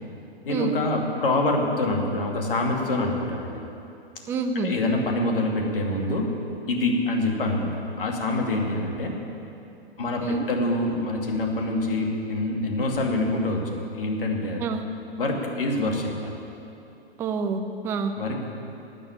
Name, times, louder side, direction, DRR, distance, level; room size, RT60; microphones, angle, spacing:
voice 1, 0.4-3.6 4.6-6.3 6.7-7.7 8.0-9.1 10.0-14.6 15.2-16.4 18.2-18.4, left 2 dB, 60° left, 1 dB, 2.5 m, -26 dB
voice 2, 4.3-4.7 10.2-10.4 14.6-14.9 17.2-18.1, right 4 dB, 10° right, 6 dB, 0.4 m, -27 dB
12.0 x 9.0 x 10.0 m, 2.8 s
figure-of-eight pair, 115°, 31 cm